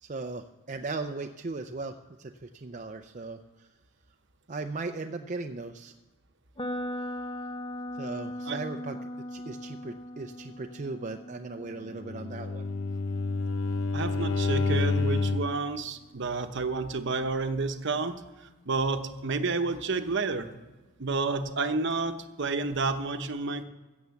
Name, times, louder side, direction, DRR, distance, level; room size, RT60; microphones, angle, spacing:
voice 1, 0.0-1.9 2.2-3.4 4.5-5.9 8.0-12.7, right 3 dB, 35° right, 5 dB, 0.5 m, -37 dB
sound 1, 6.6-14.5, equal, 25° left, 0.8 m, -40 dB
Bowed string instrument, 12.0-15.6, left 3 dB, 60° left, 0.8 m, -28 dB
voice 2, 13.9-18.1 18.7-20.5 21.0-23.6, right 3 dB, 55° right, 8 dB, 1.0 m, -30 dB
16.0 x 7.1 x 7.1 m, 1.2 s
head